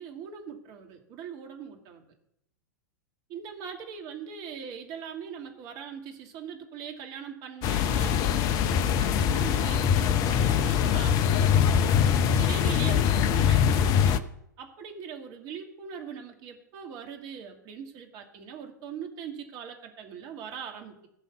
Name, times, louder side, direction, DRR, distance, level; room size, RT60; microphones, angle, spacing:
voice 1, 0.0-2.0 3.3-11.8 12.4-14.3 14.6-21.1, right 7 dB, 40° right, 3 dB, 2.6 m, -41 dB
sound 1, 7.6-14.2, left 8 dB, 35° left, 0.8 m, -23 dB
16.5 x 5.7 x 8.5 m, 0.77 s
figure-of-eight pair, 95°, 10 cm